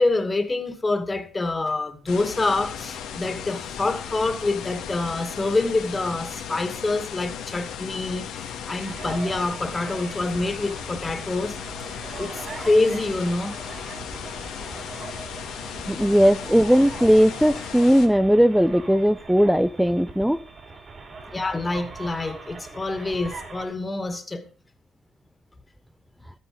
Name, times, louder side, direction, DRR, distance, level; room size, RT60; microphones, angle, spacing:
voice 1, 0.0-11.6 11.8-13.5 21.3-24.5, left 2 dB, 25° left, 2.3 m, -26 dB
sound 1, 2.1-18.1, left 8 dB, 80° left, 2.0 m, -36 dB
radio reception noise with alien girls voices modulations, 8.8-23.6, right 4 dB, 40° right, 4.0 m, -40 dB
voice 2, 15.9-20.4, equal, 5° right, 0.6 m, -18 dB
13.0 x 9.9 x 5.0 m
supercardioid pair, 75°, 0 cm